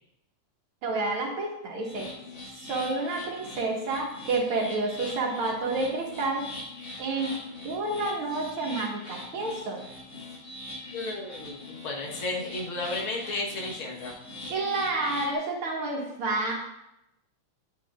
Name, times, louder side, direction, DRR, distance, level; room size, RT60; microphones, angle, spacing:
voice 1, 0.8-2.1 2.5-6.4 7.0-7.3 7.6-9.9 14.5-16.5, right 3 dB, 75° right, -1 dB, 2.2 m, -29 dB
sound 1, 1.8-15.3, left 2 dB, 55° left, 2.5 m, -42 dB
voice 2, 10.9-14.1, left 2 dB, 75° left, -1 dB, 2.2 m, -33 dB
9.1 x 8.3 x 2.4 m, 0.86 s
omnidirectional pair, 2.4 m